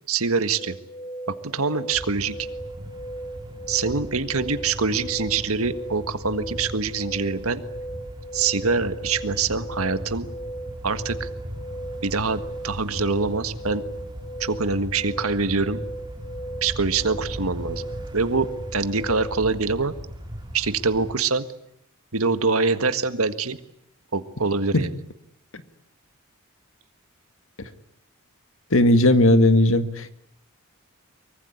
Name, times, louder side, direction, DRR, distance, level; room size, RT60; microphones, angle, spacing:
voice 1, 0.1-0.7 1.4-2.3 3.7-7.6 8.3-10.3 10.8-11.3 12.0-13.8 14.4-15.8 16.6-17.8 18.1-19.9 20.5-21.4 22.1-23.6 24.1-24.9, right 4 dB, 75° right, 11 dB, 1.7 m, -24 dB
sound 1, 0.6-19.4, right 1 dB, 15° left, 2.3 m, -37 dB
sound 2, 1.9-21.1, equal, 20° right, 4.0 m, -38 dB
voice 2, 28.7-30.2, left 1 dB, 65° left, 10 dB, 2.0 m, -17 dB
24.5 x 23.5 x 9.8 m, 0.75 s
head